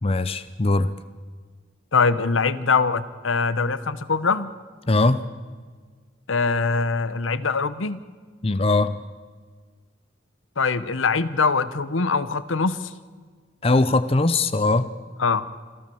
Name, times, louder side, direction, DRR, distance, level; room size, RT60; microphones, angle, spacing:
voice 1, 0.0-0.9 4.9-5.2 8.4-9.0 13.6-14.9, left 2 dB, 30° left, 13 dB, 0.7 m, -20 dB
voice 2, 1.9-4.5 6.3-8.0 10.6-12.9 15.2-15.5, left 4 dB, 85° left, 15 dB, 1.0 m, -23 dB
26.5 x 14.0 x 7.0 m, 1.6 s
head